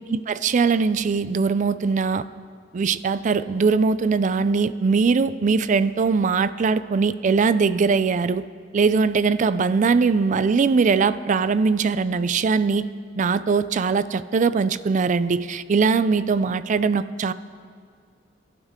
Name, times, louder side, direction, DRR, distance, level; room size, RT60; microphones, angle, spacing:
voice 1, 0.0-2.2 2.7-8.4 8.7-12.9 13.2-17.3, right 5 dB, 40° right, 15 dB, 0.4 m, -21 dB
23.0 x 11.5 x 3.7 m, 2.1 s
head